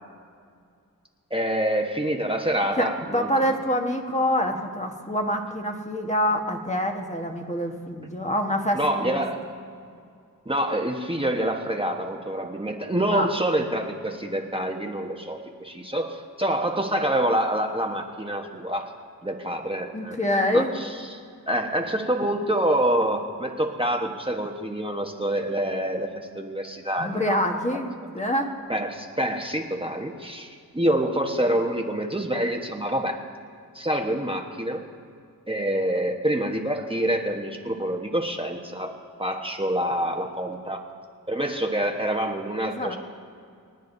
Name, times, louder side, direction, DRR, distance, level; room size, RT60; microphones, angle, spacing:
voice 1, 1.3-3.3 8.7-9.4 10.5-18.9 19.2-21.2 21.5-26.1 26.3-27.4 28.7-30.5 30.7-33.2 33.7-34.8 35.5-40.8 41.3-43.0, right 1 dB, 15° right, 1 dB, 1.1 m, -26 dB
voice 2, 3.1-9.2 13.1-13.3 19.9-20.7 27.0-28.5 42.7-43.0, equal, 20° left, 2 dB, 1.3 m, -26 dB
27.5 x 9.3 x 2.7 m, 2.3 s
cardioid pair, 50°, 36 cm